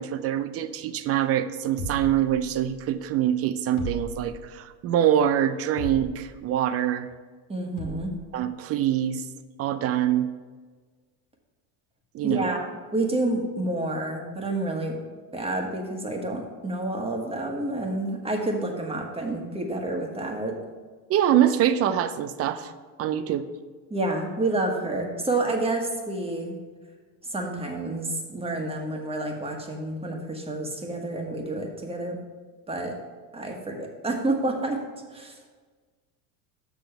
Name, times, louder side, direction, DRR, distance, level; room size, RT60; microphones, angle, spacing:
voice 1, 0.0-7.1 8.3-9.2 9.6-10.3 12.1-12.5 21.1-22.7 23.0-23.5, right 10 dB, 35° right, 13 dB, 0.4 m, -24 dB
sound 1, 1.8-2.9 3.8-4.7 5.8-6.5 7.8-8.3, left 1 dB, 75° left, 1.6 m, -37 dB
voice 2, 7.5-8.1 12.2-12.6 12.9-15.0 15.3-20.5 23.9-26.6 27.2-32.2 32.7-32.9 33.3-34.8 35.1-35.4, right 2 dB, 15° right, 2 dB, 1.3 m, -29 dB
7.0 x 6.0 x 5.7 m, 1.5 s
supercardioid pair, 125°, 45 cm